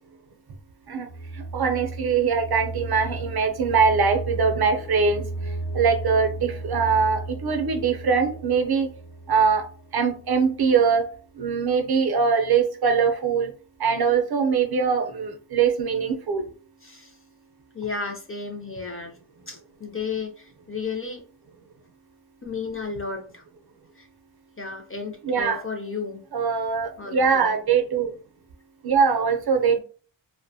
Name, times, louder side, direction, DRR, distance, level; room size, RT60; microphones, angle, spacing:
sound 1, 1.1-10.9, right 2 dB, 70° left, 0.8 m, -35 dB
voice 1, 1.3-5.2 5.7-8.9 9.3-9.6 9.9-11.1 11.4-13.5 13.8-16.4 25.2-25.6 26.3-28.1 28.8-29.8, right 5 dB, 55° right, 6 dB, 0.5 m, -22 dB
voice 2, 16.8-17.2 17.7-19.2 19.5-21.2 22.4-23.4 23.9-24.1 24.6-26.2 27.0-27.5, left 4 dB, 30° left, 1 dB, 0.4 m, -33 dB
2.5 x 2.1 x 2.6 m, 0.40 s
wide cardioid pair, 120°, 47 cm